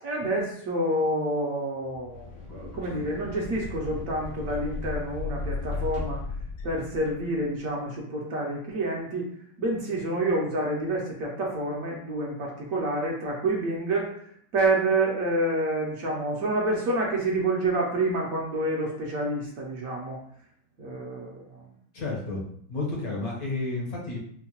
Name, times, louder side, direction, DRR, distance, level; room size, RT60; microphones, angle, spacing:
voice 1, 0.0-6.2 6.6-9.3 9.6-20.2 20.8-21.7, right 2 dB, 65° right, -2 dB, 1.0 m, -28 dB
sound 1, 1.9-7.5, left 3 dB, 80° left, 1.5 m, -35 dB
voice 2, 21.9-22.4 22.7-24.2, left 3 dB, 65° left, -3 dB, 1.3 m, -31 dB
4.5 x 2.1 x 2.9 m, 0.65 s
omnidirectional pair, 1.8 m